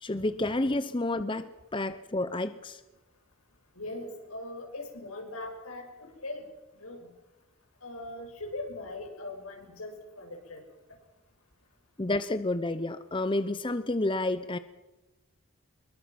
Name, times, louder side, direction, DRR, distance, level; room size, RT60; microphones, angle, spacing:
voice 1, 0.0-2.8 12.0-14.6, left 2 dB, 20° left, 12 dB, 0.7 m, -30 dB
voice 2, 3.7-6.5 6.7-7.1 7.8-10.6, left 2 dB, 85° left, 3 dB, 6.4 m, -40 dB
24.5 x 22.5 x 6.0 m, 1.1 s
head